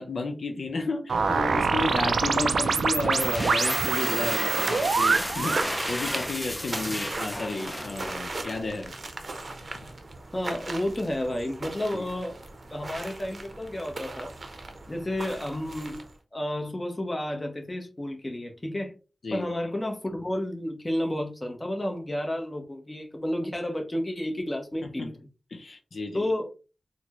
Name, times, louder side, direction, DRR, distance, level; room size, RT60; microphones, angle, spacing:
voice 1, 0.0-8.9 11.9-12.1 19.2-19.5 25.0-25.1 25.5-26.3, left 3 dB, 70° left, 0.6 m, -32 dB
sound 1, 1.1-5.7, right 5 dB, 90° right, 0.3 m, -25 dB
sound 2, 3.0-8.6, equal, 5° left, 0.4 m, -32 dB
sound 3, 4.6-16.2, right 2 dB, 50° right, 0.6 m, -38 dB
voice 2, 10.3-12.4 12.7-14.3 14.9-16.0 16.3-18.9 19.3-25.1 26.1-26.5, left 1 dB, 25° left, 0.8 m, -31 dB
4.1 x 2.1 x 2.9 m
wide cardioid pair, 65°, 0 cm